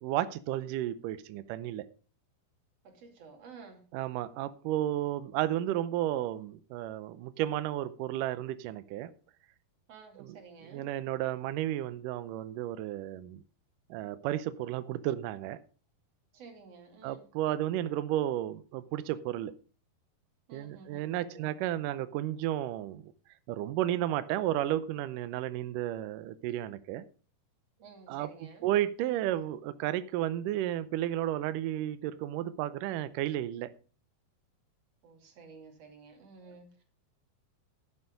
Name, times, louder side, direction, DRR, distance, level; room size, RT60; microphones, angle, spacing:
voice 1, 0.0-1.9 3.9-9.1 10.2-10.4 10.7-13.4 13.9-15.6 17.0-19.5 20.5-23.1 23.5-27.0 28.1-28.3 28.6-33.7, right 13 dB, 90° right, 14 dB, 1.8 m, -33 dB
voice 2, 2.8-3.9 9.9-10.9 16.3-17.3 20.5-21.5 27.8-28.7 35.0-36.8, right 4 dB, 45° right, 3 dB, 3.2 m, -52 dB
11.5 x 8.4 x 5.3 m, 0.38 s
omnidirectional pair, 4.5 m